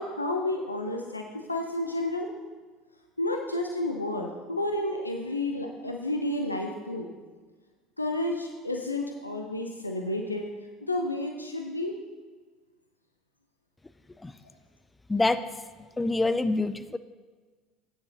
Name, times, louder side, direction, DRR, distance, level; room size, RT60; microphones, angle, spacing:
voice 1, 0.0-2.3 3.2-7.1 8.0-10.5 10.8-12.0, left 1 dB, 85° left, 2 dB, 0.6 m, -31 dB
voice 2, 15.1-15.4 16.0-17.0, left 2 dB, 10° left, 12 dB, 0.4 m, -25 dB
14.5 x 9.5 x 2.9 m, 1.4 s
figure-of-eight pair, 65°, 0 cm